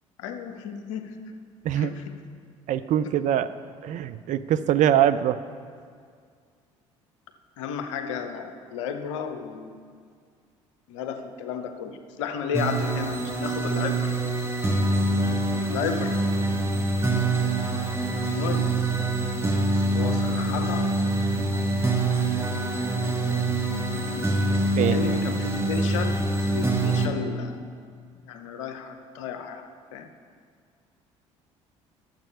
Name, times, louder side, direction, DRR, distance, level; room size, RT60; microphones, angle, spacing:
voice 1, 0.2-1.2 1.8-2.2 7.6-9.8 10.9-14.2 15.7-16.3 17.8-18.8 19.9-21.0 21.6-21.7 23.9-24.3 24.9-27.7 28.2-30.1, left 7 dB, 75° left, 7 dB, 0.8 m, -33 dB
voice 2, 1.6-2.0 2.7-3.5 3.8-5.4 24.8-25.0, right 11 dB, 50° right, 12 dB, 0.5 m, -23 dB
sound 1, 12.5-27.1, right 2 dB, 15° right, 1.4 m, -25 dB
10.5 x 7.4 x 5.5 m, 2.1 s
hypercardioid pair, 55°, 16 cm